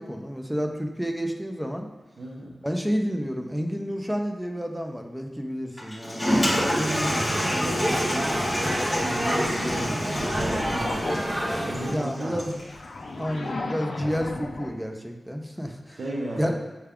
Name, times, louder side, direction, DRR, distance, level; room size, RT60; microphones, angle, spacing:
voice 1, 0.0-1.9 2.6-6.4 11.9-12.6 13.2-16.0 16.4-16.5, equal, 5° right, 3 dB, 0.4 m, -30 dB
voice 2, 2.2-2.5 6.2-11.2 11.6-12.4 15.9-16.5, right 1 dB, 70° right, -4 dB, 0.6 m, -34 dB
Toilet flush, 5.8-12.7, equal, 15° left, 0.9 m, -29 dB
sound 1, 6.3-11.9, equal, 35° right, 0.8 m, -28 dB
sound 2, 7.8-11.2 11.9-14.7, left 3 dB, 80° left, 0.4 m, -37 dB
5.7 x 2.3 x 3.4 m, 1.2 s
wide cardioid pair, 130°, 0 cm